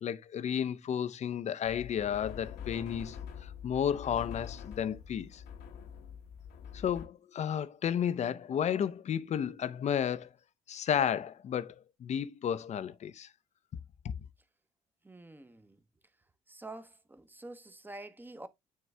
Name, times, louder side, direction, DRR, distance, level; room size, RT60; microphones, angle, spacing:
voice 1, 0.0-5.4 6.7-10.3 10.7-13.3 14.0-14.1, left 9 dB, 45° left, 0.6 m, -32 dB
sound 1, 1.6-7.1, left 8 dB, 70° left, 1.2 m, -45 dB
voice 2, 15.0-15.8 16.5-18.5, right 2 dB, 10° right, 0.9 m, -47 dB
9.4 x 3.1 x 3.4 m
hypercardioid pair, 65°, 16 cm